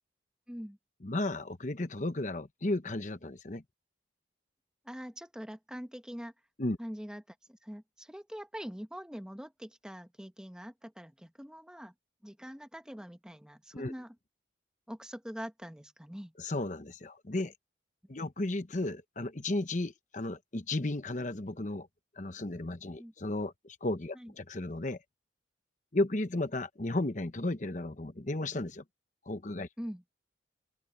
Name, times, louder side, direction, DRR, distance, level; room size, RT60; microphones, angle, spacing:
voice 1, 1.0-3.6 6.6-6.8 13.7-13.9 16.4-17.5 18.1-21.9 22.2-25.0 25.9-28.8 29.3-29.7, left 2 dB, 40° left, 1.0 m, -34 dB
voice 2, 4.8-6.3 6.8-11.9 12.2-14.1 14.9-16.3 23.0-23.1 24.1-24.3 29.8-30.0, equal, 5° right, 1.0 m, -44 dB
open air
head